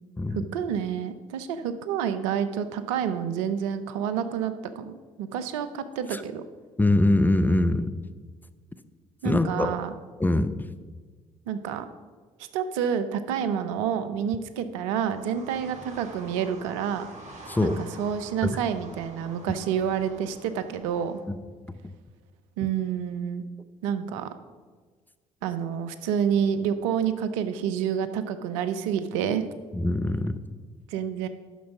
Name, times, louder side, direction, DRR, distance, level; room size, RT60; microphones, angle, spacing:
voice 1, 0.3-6.4 9.2-9.9 11.5-11.9 12.5-17.1 17.6-21.2 22.6-23.4 23.8-24.3 25.4-29.4 30.9-31.3, right 8 dB, 80° right, 11 dB, 0.6 m, -28 dB
voice 2, 6.8-7.9 9.2-9.7 10.2-10.6 17.5-17.8 18.4-18.5 21.3-21.4 29.7-30.4, left 2 dB, 10° left, 11 dB, 0.7 m, -23 dB
sound 1, 15.1-21.2, right 2 dB, 45° right, 2.5 m, -47 dB
9.2 x 6.2 x 5.9 m, 1.5 s
hypercardioid pair, 50°, 16 cm